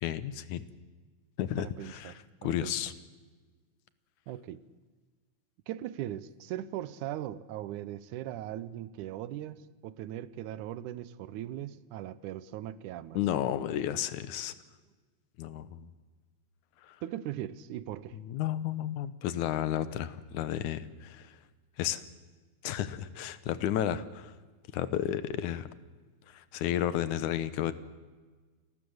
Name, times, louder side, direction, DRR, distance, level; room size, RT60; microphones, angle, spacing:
voice 1, 0.0-0.6 1.4-2.1 2.4-2.9 13.1-14.5 15.4-15.9 16.9-17.0 18.1-21.3 21.8-22.0 22.6-24.2 24.7-25.7 26.3-27.7, left 11 dB, 85° left, 2.4 m, -32 dB
voice 2, 1.6-2.8 4.3-4.6 5.7-13.2 17.0-18.2 23.9-24.0, right 12 dB, 90° right, 2.3 m, -39 dB
29.0 x 14.0 x 7.9 m
omnidirectional pair, 3.4 m